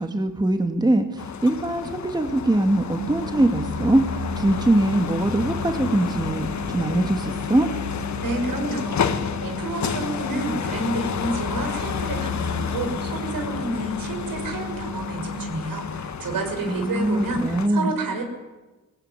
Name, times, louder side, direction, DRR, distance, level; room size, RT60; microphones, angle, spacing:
voice 1, 0.0-6.5 6.7-7.7 16.7-17.9, right 1 dB, 10° right, 5 dB, 2.0 m, -22 dB
sound 1, 1.2-17.7, left 7 dB, 55° left, 1.6 m, -30 dB
sound 2, 3.0-15.4, left 1 dB, 65° right, 4.6 m, -35 dB
voice 2, 8.2-18.2, right 2 dB, 85° right, 5 dB, 6.4 m, -30 dB
24.0 x 19.0 x 9.8 m, 1.2 s
wide cardioid pair, 145°, 33 cm